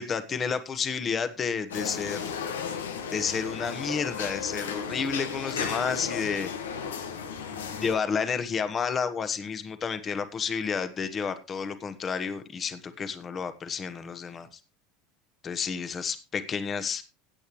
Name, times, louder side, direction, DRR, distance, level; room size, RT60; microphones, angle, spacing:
voice 1, 0.0-2.3 3.1-6.5 7.5-14.6 15.4-17.0, left 6 dB, 30° left, 11 dB, 1.3 m, -31 dB
sound 1, 1.7-7.9, left 6 dB, 80° left, 1.4 m, -34 dB
17.0 x 8.4 x 3.1 m, 0.27 s
hypercardioid pair, 80°, 0 cm